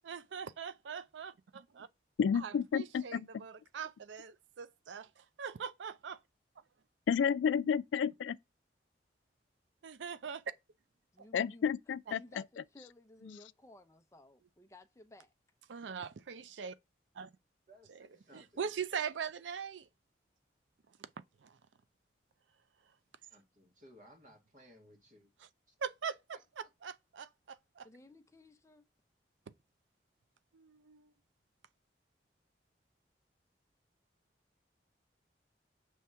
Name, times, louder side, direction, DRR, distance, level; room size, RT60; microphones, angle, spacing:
voice 1, 0.0-1.9 2.3-6.2 9.8-10.4 11.2-11.3 15.7-16.8 17.1-17.3 17.9-19.9 21.0-21.1 21.4-21.6 25.4-25.5 25.8-26.4 26.8-27.9 30.5-31.1, right 6 dB, 90° right, 0.5 m, -42 dB
voice 2, 2.2-3.5 7.1-8.4 11.3-12.2 13.3-13.4, left 7 dB, 90° left, 0.3 m, -31 dB
voice 3, 11.1-11.7 12.1-15.3 27.8-28.8, left 1 dB, 15° left, 0.6 m, -57 dB
voice 4, 17.7-18.6 23.3-25.3 25.7-25.8 26.3-26.4, equal, 45° right, 1.8 m, -60 dB
6.3 x 3.4 x 5.5 m
head